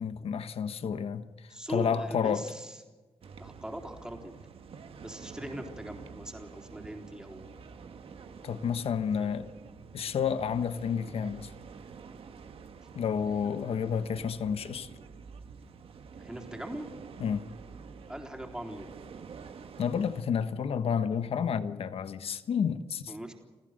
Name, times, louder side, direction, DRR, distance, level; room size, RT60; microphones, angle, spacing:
voice 1, 0.0-2.5 8.4-9.5 9.9-11.5 12.9-14.9 17.2-17.4 19.8-23.1, left 7 dB, 70° left, 1.3 m, -30 dB
voice 2, 1.5-2.8 3.4-4.4 5.0-7.5 9.2-9.3 16.2-16.9 18.1-18.9 23.1-23.3, right 1 dB, 5° right, 3.8 m, -40 dB
sound 1, 3.2-20.2, right 6 dB, 70° right, 1.5 m, -48 dB
29.0 x 15.0 x 6.6 m
cardioid pair, 85°, 10 cm